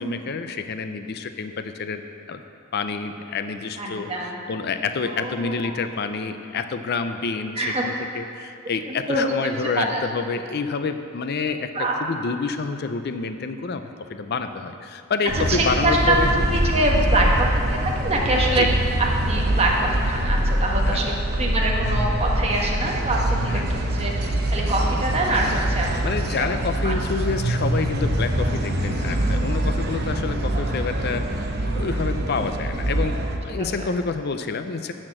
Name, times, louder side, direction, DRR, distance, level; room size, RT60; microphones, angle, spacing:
voice 1, 0.0-2.0 2.3-2.4 2.7-16.4 17.2-17.3 18.5-18.7 20.8-21.0 23.5-23.8 26.0-34.9, left 4 dB, 50° left, 8 dB, 0.5 m, -28 dB
voice 2, 3.8-4.4 5.0-5.8 7.6-7.9 8.9-10.0 11.7-12.0 15.3-16.2 16.5-18.8 19.3-25.9 26.2-26.5 26.8-26.9 33.5-33.9, right 1 dB, 30° right, -2 dB, 1.3 m, -25 dB
sound 1, 15.3-33.4, right 1 dB, 50° right, 0.8 m, -24 dB
12.0 x 4.4 x 7.7 m, 2.5 s
head